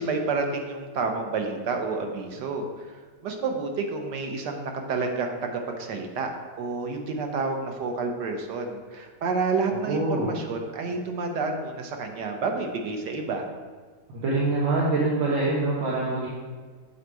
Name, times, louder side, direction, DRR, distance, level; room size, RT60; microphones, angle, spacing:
voice 1, 0.0-2.9 3.2-6.3 6.6-13.5, right 4 dB, 65° right, 3 dB, 1.4 m, -29 dB
voice 2, 9.9-10.3 14.2-16.3, right 2 dB, 85° right, -6 dB, 1.9 m, -24 dB
7.9 x 4.1 x 4.6 m, 1.5 s
omnidirectional pair, 2.1 m